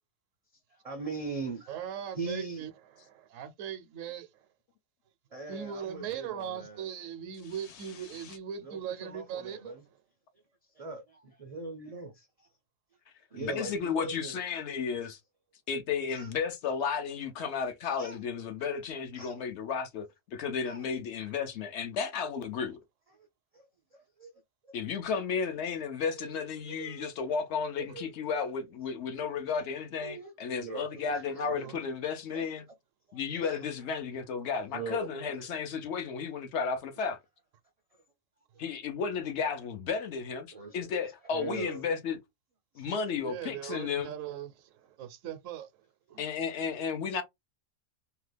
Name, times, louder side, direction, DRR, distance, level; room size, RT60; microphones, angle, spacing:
voice 1, 0.5-1.7 2.2-2.7 5.3-6.9 8.6-9.8 10.7-12.5 13.3-14.4 16.1-16.3 18.0-18.2 19.2-19.4 20.6-20.9 23.1-23.3 23.5-24.4 24.7-24.8 26.2-26.3 26.7-27.4 27.8-28.1 30.0-30.3 30.6-31.7 32.3-32.5 33.1-33.6 34.7-35.5 38.5-38.7 40.5-40.9 41.3-41.8 42.7-42.9 46.5-46.6, right 3 dB, 55° right, 0.4 m, -41 dB
voice 2, 1.7-2.7 3.0-4.5 5.5-9.8 31.3-31.9 43.2-45.8 46.1-46.2, right 9 dB, 75° right, 0.9 m, -40 dB
voice 3, 13.4-15.2 15.7-22.8 24.7-32.6 33.1-37.2 38.6-40.5 40.7-42.2 42.8-44.1 46.2-47.2, left 6 dB, 65° left, 0.8 m, -33 dB
2.8 x 2.2 x 3.3 m
omnidirectional pair, 1.4 m